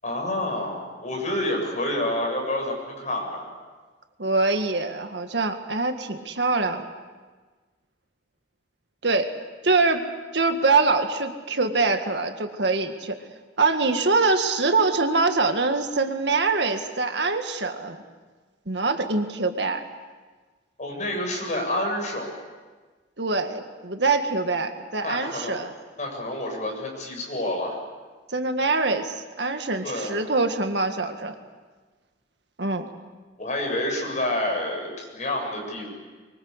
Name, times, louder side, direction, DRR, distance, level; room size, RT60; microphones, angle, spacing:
voice 1, 0.0-3.5 20.8-22.3 25.0-25.7 26.0-27.8 29.8-30.2 33.4-35.9, left 1 dB, 45° left, 1 dB, 7.6 m, -28 dB
voice 2, 4.2-6.9 9.0-9.3 9.6-13.2 13.6-18.0 18.7-19.9 23.2-25.7 28.3-31.4 32.6-32.9, right 3 dB, 70° right, 6 dB, 1.8 m, -24 dB
24.0 x 24.0 x 8.1 m, 1.4 s
head